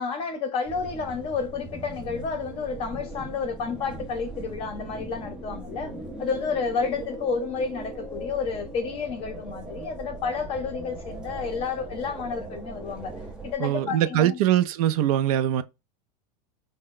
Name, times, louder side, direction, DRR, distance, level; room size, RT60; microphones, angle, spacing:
voice 1, 0.0-5.9 6.2-13.1 13.4-14.4, left 5 dB, 30° left, 0.7 m, -30 dB
sound 1, 0.6-13.5, right 1 dB, 5° right, 0.4 m, -39 dB
voice 2, 13.6-15.6, right 11 dB, 65° right, 0.4 m, -22 dB
3.4 x 2.1 x 3.7 m
supercardioid pair, 160°, 20 cm